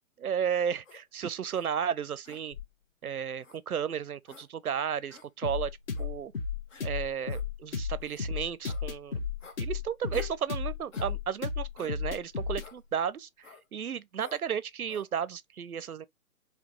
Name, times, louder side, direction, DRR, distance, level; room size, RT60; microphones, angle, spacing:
voice 1, 0.2-2.6 3.0-5.7 6.0-6.3 6.8-9.3 9.6-16.1, right 8 dB, 90° right, 0.7 m, -33 dB
sound 1, 0.8-1.0 1.5-1.7 2.2-2.8 3.4-3.6 4.3-4.5 5.1-5.3 5.9-6.1 6.7-6.9 7.3-7.5 8.0-8.2 8.6-8.8 9.4-9.6 10.1-10.4 10.9-11.1 11.8-12.0 12.6-12.8 13.4-13.6 14.2-14.4 14.9-15.1, left 5 dB, 60° left, 1.3 m, -49 dB
sound 2, 5.4-12.7, left 6 dB, 40° left, 1.1 m, -34 dB
4.2 x 2.8 x 2.9 m
figure-of-eight pair, 140°, 42 cm